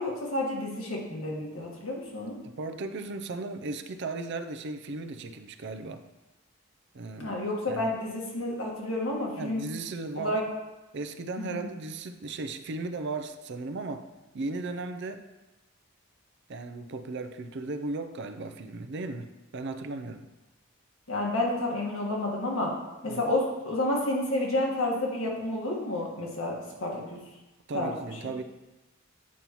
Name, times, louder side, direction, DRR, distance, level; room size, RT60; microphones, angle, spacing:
voice 1, 0.0-2.4 7.2-9.6 10.1-10.4 11.4-11.7 21.1-22.7 23.0-26.5 26.8-27.2 27.7-27.9, left 1 dB, 75° left, -2 dB, 1.6 m, -30 dB
voice 2, 2.4-6.0 6.9-7.4 7.7-7.9 9.4-10.4 10.9-14.0 14.3-15.2 16.5-20.3 23.1-23.3 27.7-28.4, right 3 dB, 55° right, 8 dB, 0.5 m, -36 dB
8.4 x 5.3 x 3.0 m, 1.0 s
head